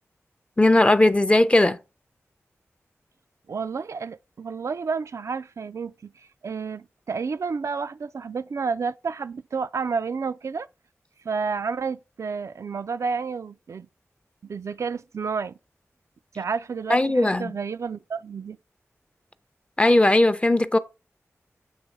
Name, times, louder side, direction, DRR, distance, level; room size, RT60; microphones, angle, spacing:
voice 1, 0.6-1.8 16.9-17.5 19.8-20.8, left 1 dB, 20° left, 0.5 m, -18 dB
voice 2, 3.5-6.1 6.4-10.7 11.2-13.9 14.4-15.6 16.4-18.6, right 5 dB, 70° right, 0.4 m, -30 dB
7.4 x 3.0 x 4.6 m
cardioid pair, 55°, 5 cm